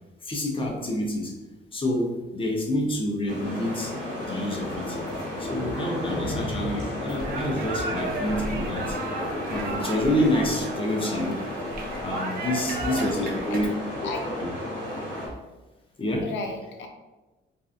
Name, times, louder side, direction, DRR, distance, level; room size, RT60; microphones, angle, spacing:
voice 1, 0.2-1.3 1.7-3.9 4.2-5.0 5.4-9.0 9.5-11.4 12.0-13.7 14.4-14.5 16.0-16.3, left 1 dB, 25° left, 0 dB, 0.6 m, -27 dB
sound 1, 3.3-15.3, left 1 dB, 45° left, 1.2 m, -33 dB
sound 2, 7.2-13.6, right 3 dB, 50° right, 0.4 m, -35 dB
voice 2, 13.5-14.3 16.2-16.9, left 3 dB, 70° left, 3 dB, 0.5 m, -35 dB
2.6 x 2.3 x 2.4 m, 1.1 s
cardioid pair, 90°, 20 cm